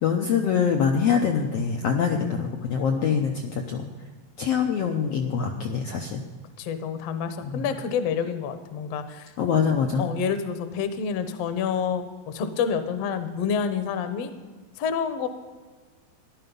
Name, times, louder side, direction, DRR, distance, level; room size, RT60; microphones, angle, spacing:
voice 1, 0.0-3.9 4.4-6.2 7.4-7.7 9.4-10.1, left 6 dB, 80° left, 3 dB, 1.4 m, -24 dB
voice 2, 2.1-2.5 6.6-9.3 10.0-14.3 14.8-15.3, left 6 dB, 65° left, 9 dB, 1.7 m, -28 dB
15.0 x 11.5 x 5.4 m, 1.4 s
omnidirectional pair, 4.0 m